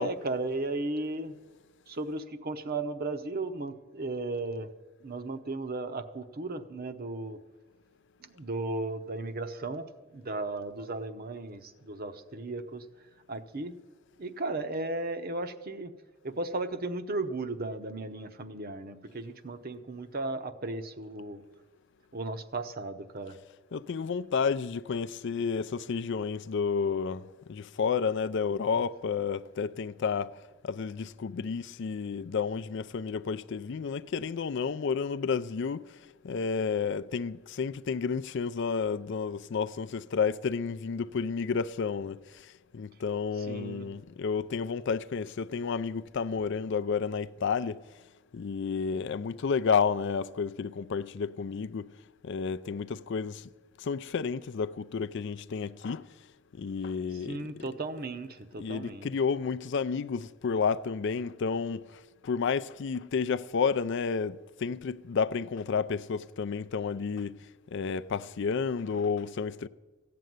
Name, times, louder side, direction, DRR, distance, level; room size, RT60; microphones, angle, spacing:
voice 1, 0.0-1.4 1.9-4.7 5.0-7.4 8.2-12.9 13.3-13.7 14.2-15.9 16.2-21.4 22.1-23.4 43.4-43.9 57.3-59.1, right 2 dB, 45° right, 0.8 m, -35 dB
voice 2, 23.7-30.4 30.6-35.9 36.2-47.8 48.3-51.9 52.2-53.5 53.8-56.1 56.5-57.7 58.6-67.5 67.7-69.7, left 5 dB, 60° left, 0.4 m, -31 dB
15.0 x 7.7 x 9.4 m
head